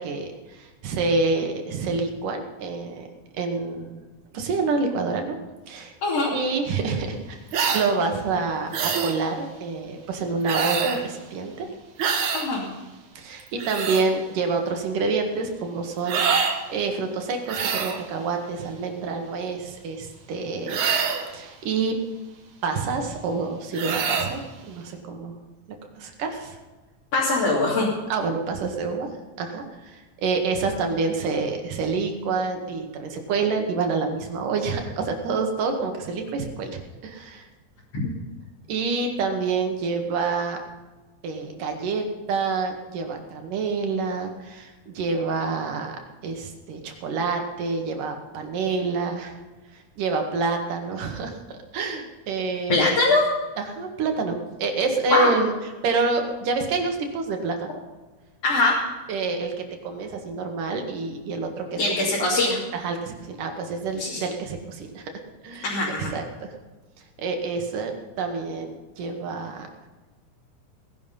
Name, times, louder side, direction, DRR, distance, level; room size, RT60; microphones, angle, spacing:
voice 1, 0.0-3.1 3.3-4.0 4.3-5.4 5.7-5.9 6.3-7.4 7.7-11.7 13.2-20.8 21.3-22.0 22.6-25.3 26.0-26.6 28.1-29.1 29.4-37.5 38.7-40.6 41.2-45.9 46.2-49.3 49.7-53.0 53.6-55.5 55.8-57.8 59.1-62.1 62.7-65.1 65.4-65.7 66.0-66.5 67.2-69.7, right 4 dB, 85° right, 4 dB, 3.5 m, -27 dB
voice 2, 6.0-6.3 12.3-12.6 27.1-27.9 52.7-53.3 55.1-55.3 58.4-58.7 61.8-62.6 64.0-64.2 65.6-66.1, left 2 dB, 50° left, -6 dB, 3.8 m, -22 dB
sound 1, 7.5-7.9 8.7-9.2 10.4-11.0 12.0-12.5 13.4-14.1 16.1-16.6 17.5-18.0 20.7-21.3 23.7-24.3, right 6 dB, 70° right, 2.9 m, -25 dB
18.5 x 11.5 x 5.5 m, 1.2 s
omnidirectional pair, 3.7 m